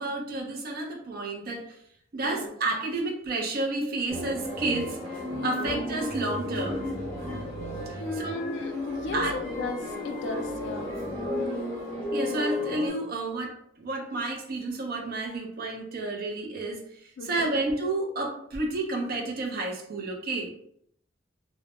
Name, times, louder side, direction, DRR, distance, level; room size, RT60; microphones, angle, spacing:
voice 1, 0.0-1.6 2.1-5.0 5.4-6.8 7.9-8.5 9.1-9.3 12.1-20.5, right 2 dB, 50° right, 1 dB, 0.5 m, -31 dB
voice 2, 2.2-2.5 5.4-5.8 8.0-9.2 9.6-10.9 17.2-17.5, left 2 dB, 65° left, 5 dB, 0.3 m, -36 dB
sound 1, 4.1-12.9, left 1 dB, 5° left, 0.7 m, -33 dB
2.1 x 2.0 x 2.9 m, 0.69 s
head